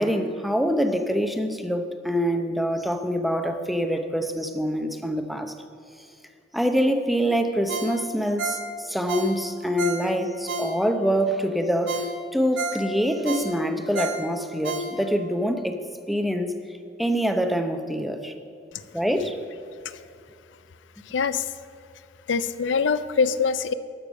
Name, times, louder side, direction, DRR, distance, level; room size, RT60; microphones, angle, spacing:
voice 1, 0.0-5.5 6.5-12.0 12.3-15.8 16.1-16.5 17.0-18.3 18.9-19.3, equal, ahead, 6 dB, 0.6 m, -25 dB
Ringtone, 7.7-11.1 11.5-11.6 11.9-15.3 15.7-15.8, right 3 dB, 80° right, 1.2 m, -32 dB
voice 2, 21.1-21.5 22.3-23.7, left 5 dB, 80° left, 14 dB, 0.5 m, -23 dB
12.0 x 6.7 x 6.3 m, 2.5 s
head